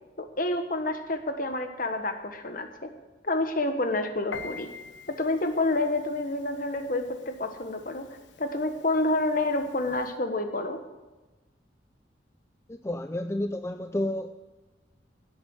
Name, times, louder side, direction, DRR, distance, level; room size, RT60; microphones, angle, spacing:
voice 1, 0.2-2.9 3.2-4.7 5.1-10.8, left 2 dB, 50° left, 6 dB, 1.3 m, -29 dB
Piano, 4.3-10.2, left 4 dB, 80° left, 1.1 m, -47 dB
voice 2, 12.7-14.3, left 1 dB, 15° left, 8 dB, 0.4 m, -30 dB
17.0 x 8.4 x 6.5 m, 1.2 s
head